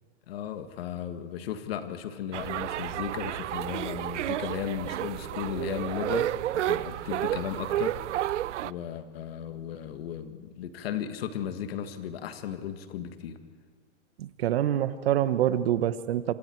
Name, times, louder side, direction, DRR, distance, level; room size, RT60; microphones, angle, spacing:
voice 1, 0.3-8.0 8.6-13.4, left 9 dB, 50° left, 8 dB, 1.9 m, -35 dB
sound 1, 2.3-8.7, right 13 dB, 70° right, 0.6 m, -31 dB
voice 2, 14.2-16.3, right 11 dB, 55° right, 13 dB, 1.2 m, -26 dB
27.0 x 26.5 x 4.6 m, 1.5 s
hypercardioid pair, 155°, 37 cm